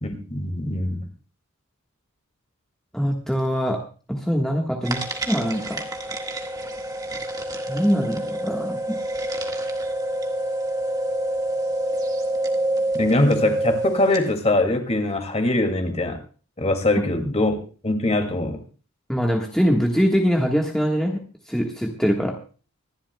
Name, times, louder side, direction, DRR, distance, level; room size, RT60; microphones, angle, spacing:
voice 1, 0.0-1.1 13.0-16.2 16.6-17.6 17.8-18.6, left 2 dB, 30° left, 6 dB, 2.3 m, -22 dB
voice 2, 2.9-3.8 4.1-5.8 7.7-9.0 19.1-22.4, equal, ahead, 0 dB, 1.4 m, -23 dB
sound 1, 4.8-14.4, right 1 dB, 15° right, 1.6 m, -27 dB
25.5 x 11.5 x 2.2 m, 0.37 s
head